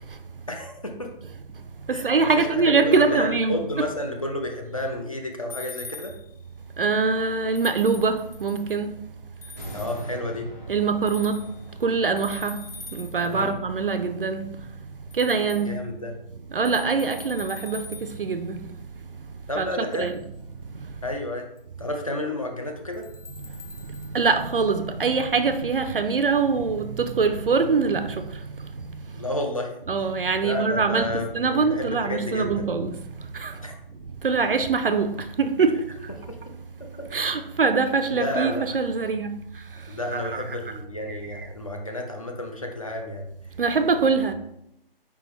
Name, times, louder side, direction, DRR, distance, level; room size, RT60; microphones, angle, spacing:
voice 1, 0.5-1.1 1.9-2.1 2.4-6.1 9.7-10.5 13.3-13.6 15.7-16.2 19.5-20.1 21.0-21.5 21.8-23.1 29.1-29.7 30.4-32.6 33.6-33.8 36.3-36.4 37.0-37.1 38.1-38.6 39.9-43.3, left 1 dB, 35° left, 0.6 m, -31 dB
voice 2, 1.9-3.9 6.8-8.9 10.7-11.4 11.8-12.6 12.9-14.4 15.2-15.8 16.5-18.6 19.6-19.7 20.0-20.1 24.1-28.2 29.9-33.0 33.3-33.5 34.2-35.8 37.1-39.4 40.1-40.6 41.1-41.2 43.6-44.3, right 4 dB, 70° right, 0.5 m, -23 dB
sound 1, 5.5-6.4 7.5-8.8 9.4-10.1 11.1-11.7 12.2-13.5 15.1-15.7 16.6-18.3 19.9-20.2 21.6-21.7 22.9-24.2, left 4 dB, 75° left, 0.7 m, -44 dB
sound 2, 9.5-14.7 15.1-15.2, right 1 dB, 15° left, 0.9 m, -42 dB
4.6 x 3.4 x 3.0 m
figure-of-eight pair, 175°, 29 cm